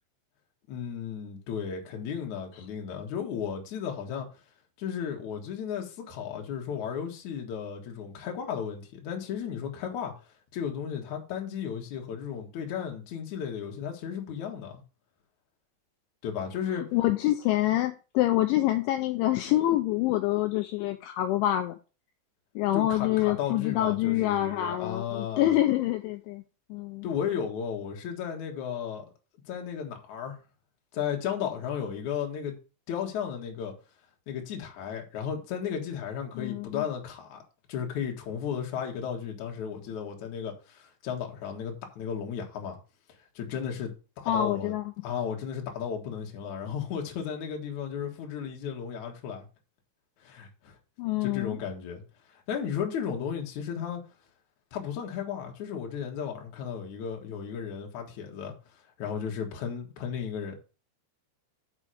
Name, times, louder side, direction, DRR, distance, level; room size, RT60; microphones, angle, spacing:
voice 1, 0.7-4.3 4.8-10.1 10.5-14.7 16.2-16.9 22.7-25.5 27.0-29.1 29.5-30.4 30.9-32.6 32.9-33.7 34.3-37.4 37.7-42.8 43.4-43.9 44.2-44.7 45.0-49.4 50.2-50.7 51.2-52.0 52.3-54.0 54.7-58.5 59.0-60.6, left 8 dB, 55° left, 2.2 m, -34 dB
voice 2, 16.9-21.7 22.6-26.4 26.7-27.1 36.4-36.8 44.3-44.8 51.0-51.6, left 14 dB, 85° left, 2.8 m, -26 dB
6.1 x 5.7 x 6.2 m
omnidirectional pair, 5.8 m